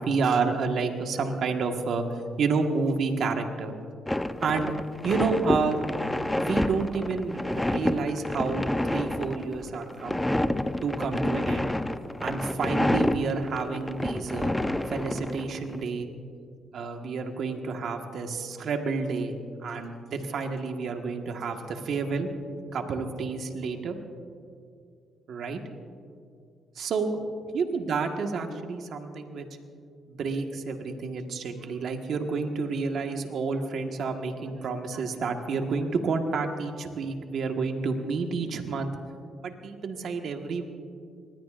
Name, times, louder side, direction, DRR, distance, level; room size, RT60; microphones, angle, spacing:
voice 1, 0.0-3.7 4.4-4.7 5.0-5.8 6.4-10.2 10.8-11.8 12.2-14.5 14.9-16.1 16.7-19.3 19.6-22.3 22.7-24.0 25.3-25.6 26.8-27.2 27.5-29.5 30.1-38.9 39.4-40.6, right 4 dB, 65° right, 4 dB, 1.5 m, -29 dB
sound 1, 4.1-15.8, left 1 dB, 10° left, 0.7 m, -29 dB
25.0 x 20.0 x 2.5 m, 2.4 s
cardioid pair, 90°, 0 cm